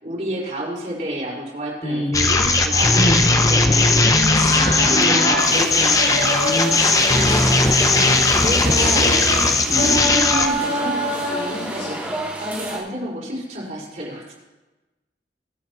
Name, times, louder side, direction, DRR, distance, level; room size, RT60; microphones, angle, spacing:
voice 1, 0.0-3.0 3.3-4.2 4.8-6.5 8.0-9.1 9.7-14.3, right 1 dB, 45° right, -5 dB, 4.9 m, -30 dB
sound 1, 2.1-10.5, left 3 dB, 20° left, 0.6 m, -17 dB
sound 2, 3.5-12.2, equal, 80° left, 3.6 m, -28 dB
voice 2, 4.5-5.2 6.0-6.7 7.3-7.5 8.7-10.0, equal, 35° left, -3 dB, 2.4 m, -26 dB
sound 3, 5.4-12.8, right 1 dB, 10° right, 2.6 m, -30 dB
24.5 x 8.3 x 3.0 m, 1.1 s
head